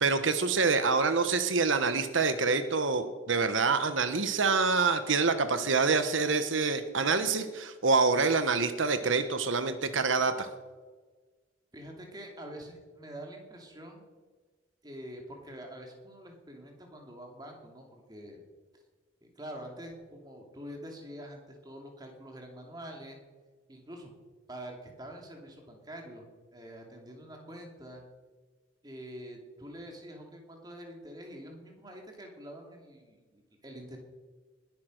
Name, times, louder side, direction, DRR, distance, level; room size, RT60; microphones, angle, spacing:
voice 1, 0.0-10.5, right 4 dB, 90° right, 10 dB, 1.1 m, -26 dB
voice 2, 11.7-14.1 14.8-18.4 19.2-23.2 23.7-24.1 24.5-26.2 26.5-28.0 28.8-34.0, equal, 20° right, 2 dB, 2.8 m, -46 dB
20.0 x 9.5 x 6.4 m, 1.4 s
head